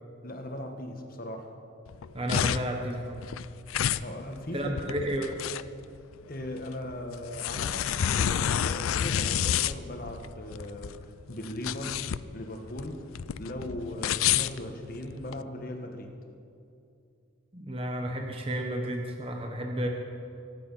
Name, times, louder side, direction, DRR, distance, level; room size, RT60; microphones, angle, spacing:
voice 1, 0.2-1.5 4.0-5.0 6.3-11.0 11.3-12.0 12.3-13.1 13.4-16.2, left 1 dB, 45° left, 4 dB, 1.5 m, -38 dB
sound 1, 1.9-15.4, left 9 dB, 90° left, 0.4 m, -30 dB
voice 2, 2.1-3.2 4.5-5.4 17.5-19.9, right 1 dB, 25° right, 2 dB, 1.1 m, -32 dB
23.5 x 9.3 x 5.6 m, 2.6 s
head